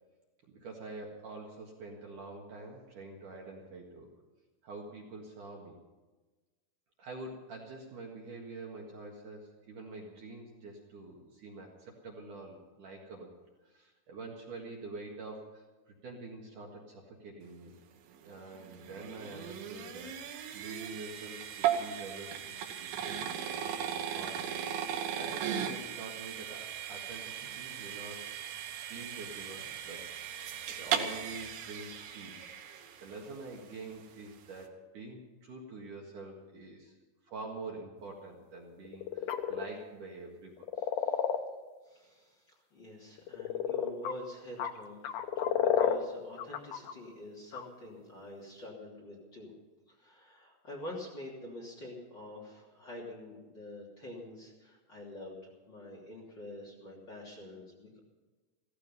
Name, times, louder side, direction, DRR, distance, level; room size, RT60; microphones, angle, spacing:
voice 1, 0.5-4.1 4.6-5.8 7.0-13.3 13.6-17.8 18.2-24.4 24.8-28.3 28.9-30.1 30.4-32.5 33.0-36.9 37.3-40.7, right 3 dB, 55° right, -1 dB, 2.8 m, -46 dB
sound 1, 18.2-33.4, right 9 dB, 80° right, 3.5 m, -37 dB
sound 2, 38.8-39.7 40.6-41.4 43.2-44.1 44.6-44.7 45.0-46.0 46.4-46.9 47.5-47.7, left 9 dB, 80° left, 1.8 m, -30 dB
voice 2, 40.8-41.2 41.8-45.0 45.6-49.5 49.9-58.0, left 1 dB, 30° left, -2 dB, 3.1 m, -46 dB
16.0 x 15.5 x 5.6 m, 1.2 s
omnidirectional pair, 5.1 m